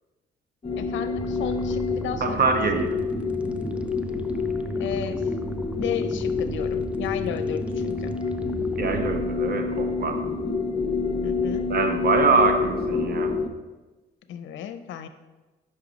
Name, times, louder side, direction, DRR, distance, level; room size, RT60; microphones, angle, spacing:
sound 1, 0.6-13.5, left 4 dB, 30° left, 0.7 m, -27 dB
voice 1, 0.8-2.4 4.8-5.4 5.8-8.1 11.2-11.7 14.3-15.1, left 9 dB, 75° left, 9 dB, 0.5 m, -34 dB
sound 2, 1.2-9.2, right 3 dB, 5° right, 0.3 m, -38 dB
voice 2, 2.2-2.9 8.8-10.2 11.7-13.3, right 4 dB, 50° right, 6 dB, 0.8 m, -24 dB
5.5 x 4.9 x 3.9 m, 1.2 s
cardioid pair, 90°, 20 cm